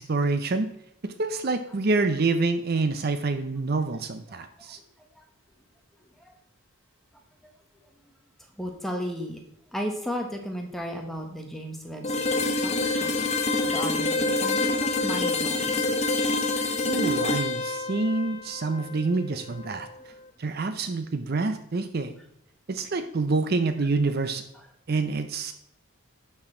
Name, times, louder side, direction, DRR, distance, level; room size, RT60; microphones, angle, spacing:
voice 1, 0.1-0.7 1.0-4.8 16.9-19.9 20.4-22.1 22.7-24.4 24.9-25.5, right 3 dB, 45° right, 9 dB, 0.5 m, -27 dB
voice 2, 4.3-4.7 6.2-6.3 8.6-9.4 9.7-13.1 13.7-15.8, equal, ahead, 2 dB, 1.0 m, -35 dB
sound 1, 12.0-19.9, left 2 dB, 30° left, 0.7 m, -27 dB
11.0 x 4.4 x 4.4 m, 0.72 s
head